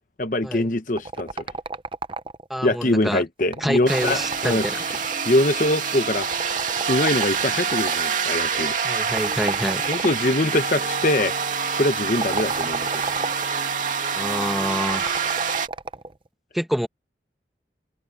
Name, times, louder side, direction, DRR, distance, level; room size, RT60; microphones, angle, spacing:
voice 1, 0.2-1.3 2.6-4.7 5.2-6.5 6.9-8.8 9.9-11.3 11.8-12.9, left 1 dB, 45° left, 1.0 m, -23 dB
sound 1, 1.0-2.6 3.4-5.3 6.2-8.1 9.1-10.4 12.0-13.5 14.8-16.1, right 3 dB, 30° right, 0.6 m, -32 dB
voice 2, 2.5-3.2 3.6-4.8 8.8-9.8 14.2-15.2 16.5-16.9, equal, ahead, 1.7 m, -27 dB
sound 2, 3.9-15.7, right 6 dB, 45° right, 2.6 m, -26 dB
head